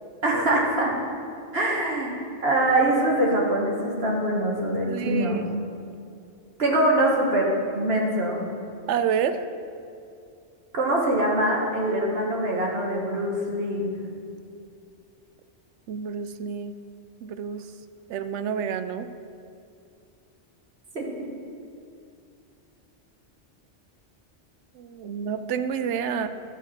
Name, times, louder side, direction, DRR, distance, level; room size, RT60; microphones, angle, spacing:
voice 1, 0.2-0.9 1.5-2.1 2.4-5.4 6.6-8.5 10.7-13.9 20.9-21.0, right 1 dB, 60° right, -2 dB, 1.7 m, -23 dB
voice 2, 4.9-5.5 8.9-9.5 15.9-16.8 17.2-17.7 18.1-19.1 24.7-26.3, right 7 dB, 80° right, 11 dB, 0.9 m, -28 dB
12.0 x 4.7 x 7.7 m, 2.5 s
omnidirectional pair, 1.2 m